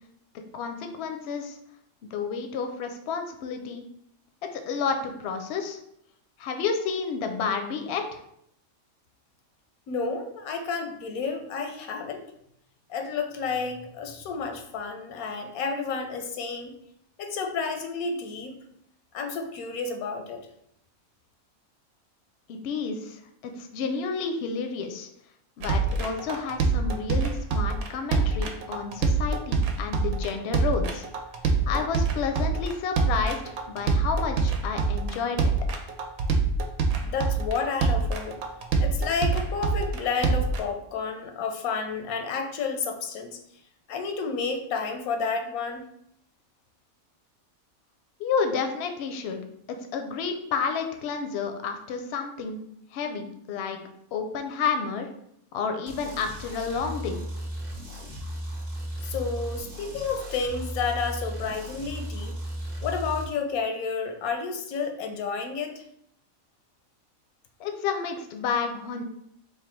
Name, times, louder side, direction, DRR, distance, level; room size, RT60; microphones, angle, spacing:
voice 1, 0.5-1.6 2.0-3.8 4.5-5.8 6.4-8.2 22.5-25.1 25.6-31.1 31.7-35.5 48.2-49.4 49.7-52.6 52.9-53.8 54.1-55.1 55.5-57.2 67.6-69.0, left 5 dB, 65° left, 6 dB, 0.7 m, -30 dB
voice 2, 9.9-12.2 12.9-16.7 17.2-18.5 19.1-20.5 37.0-38.4 38.8-43.4 43.9-45.8 59.0-62.4 62.8-65.8, left 5 dB, 90° left, 5 dB, 1.1 m, -31 dB
sound 1, 25.6-40.6, right 4 dB, 85° right, 1.0 m, -25 dB
sound 2, 55.9-63.2, equal, 50° right, 0.8 m, -35 dB
3.2 x 2.3 x 4.3 m, 0.73 s
omnidirectional pair, 1.5 m